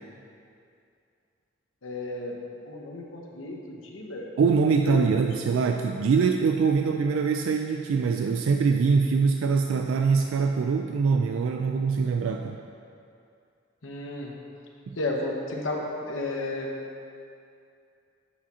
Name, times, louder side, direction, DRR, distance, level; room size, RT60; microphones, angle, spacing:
voice 1, 1.8-2.4 2.7-4.3 4.8-5.1 5.5-5.7 13.8-14.3 15.0-16.7, left 2 dB, 75° left, 0 dB, 0.9 m, -33 dB
voice 2, 4.4-12.6 14.9-15.0, right 5 dB, 75° right, 5 dB, 0.3 m, -23 dB
8.5 x 6.0 x 2.8 m, 2.5 s
head